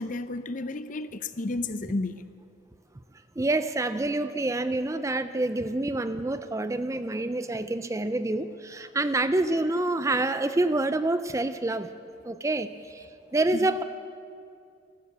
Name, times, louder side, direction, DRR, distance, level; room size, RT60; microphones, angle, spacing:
voice 1, 0.0-2.2 13.6-13.7, left 2 dB, 45° left, 12 dB, 0.6 m, -32 dB
voice 2, 3.4-11.9 12.2-13.1 13.3-13.8, right 2 dB, 15° right, 12 dB, 0.4 m, -27 dB
13.5 x 12.5 x 8.3 m, 2.4 s
head